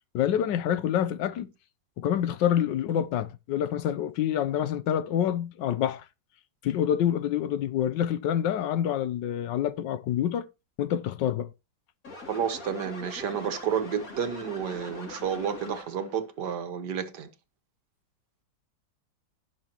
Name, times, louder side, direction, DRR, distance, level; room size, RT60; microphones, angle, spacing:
voice 1, 0.1-1.5 2.0-6.1 6.6-10.5 10.8-11.5, left 10 dB, 85° left, 1.4 m, -27 dB
sound 1, 12.0-16.2, left 2 dB, 50° left, 3.1 m, -42 dB
voice 2, 12.3-17.3, right 8 dB, 70° right, 1.7 m, -31 dB
18.5 x 6.2 x 2.9 m
omnidirectional pair, 1.9 m